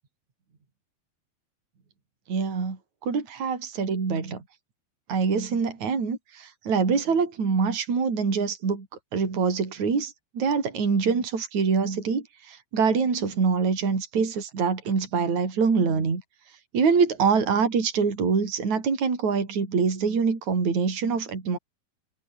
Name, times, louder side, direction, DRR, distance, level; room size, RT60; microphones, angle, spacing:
voice 1, 2.3-4.4 5.1-8.9 9.1-16.2 16.7-21.6, right 5 dB, 45° right, 6.0 m, -25 dB
omnidirectional pair, 4.9 m